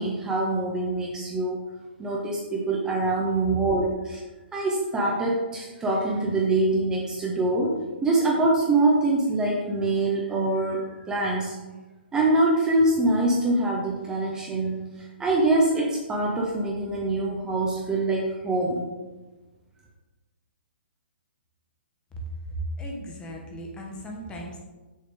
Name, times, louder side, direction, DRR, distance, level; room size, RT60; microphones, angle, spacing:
voice 1, 0.0-1.6 2.0-4.2 4.5-11.5 12.1-18.9, right 2 dB, 10° right, -2 dB, 0.9 m, -24 dB
voice 2, 22.1-24.6, right 1 dB, 15° left, 0 dB, 1.1 m, -36 dB
6.4 x 5.6 x 3.6 m, 1.2 s
figure-of-eight pair, 125°, 6 cm